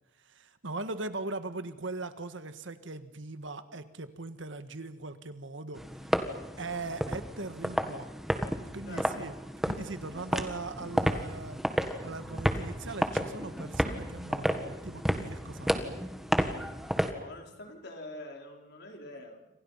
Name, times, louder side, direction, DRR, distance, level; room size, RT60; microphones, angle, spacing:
voice 1, 0.2-6.2 6.6-8.1 8.7-9.3 9.7-11.6 12.0-16.1, right 3 dB, 70° right, 10 dB, 1.6 m, -40 dB
sound 1, 5.7-17.1, equal, ahead, 1.7 m, -32 dB
voice 2, 17.1-19.5, left 1 dB, 55° left, 2 dB, 4.4 m, -45 dB
29.0 x 26.5 x 5.7 m, 0.94 s
head